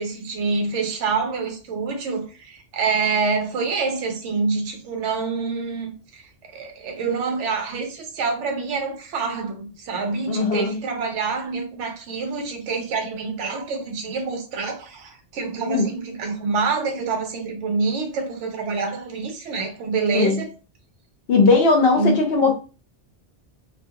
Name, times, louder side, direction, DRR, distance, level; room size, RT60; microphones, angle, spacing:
voice 1, 0.0-20.5 22.0-22.2, right 4 dB, 80° right, 0.9 m, -26 dB
voice 2, 10.3-10.8 15.7-15.9 20.1-20.4 21.3-22.5, left 4 dB, 60° left, 0.8 m, -18 dB
2.5 x 2.2 x 2.7 m
omnidirectional pair, 1.2 m